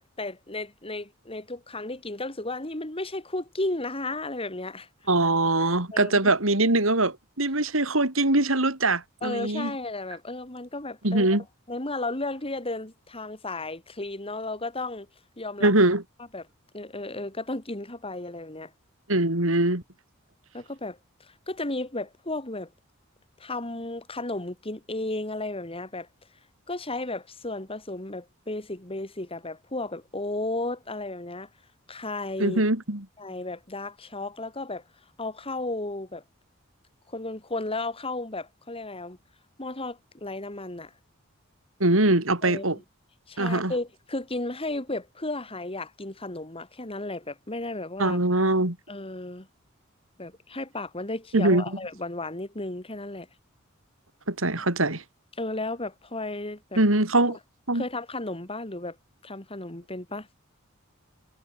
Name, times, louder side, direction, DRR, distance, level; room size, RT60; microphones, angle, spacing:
voice 1, 0.0-4.9 5.9-6.3 9.2-15.1 15.4-15.7 16.3-16.5 16.7-18.7 20.5-22.7 23.4-26.1 26.7-31.5 31.9-32.6 33.2-34.8 35.2-36.2 37.1-39.2 39.6-40.9 42.4-42.8 43.3-48.2 48.9-49.5 50.2-53.3 55.4-56.8 57.7-59.0 59.2-60.3, left 2 dB, 25° left, 3.5 m, -34 dB
voice 2, 5.1-9.7 11.0-11.4 15.6-16.0 19.1-19.8 32.4-33.0 41.8-42.8 43.4-43.7 48.0-48.8 51.3-51.6 54.3-55.0 56.8-57.4 57.7-57.8, right 2 dB, 70° right, 4.4 m, -22 dB
head